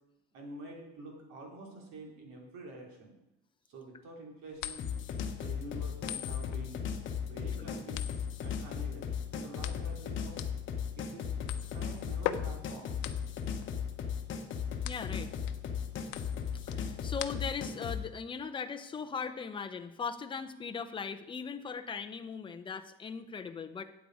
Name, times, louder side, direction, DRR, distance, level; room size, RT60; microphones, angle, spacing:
voice 1, 0.3-3.1 3.7-4.8 5.4-6.8 7.2-8.1 8.4-10.4 10.9-13.0, right 2 dB, 60° right, 0 dB, 3.4 m, -48 dB
sound 1, 4.6-17.8, left 12 dB, 75° left, 0.8 m, -42 dB
sound 2, 4.8-18.0, left 7 dB, 40° left, 1.2 m, -36 dB
voice 2, 14.8-15.3 16.7-23.8, left 5 dB, 15° left, 7 dB, 0.6 m, -39 dB
12.0 x 8.5 x 4.8 m, 0.90 s
cardioid pair, 160°, 30 cm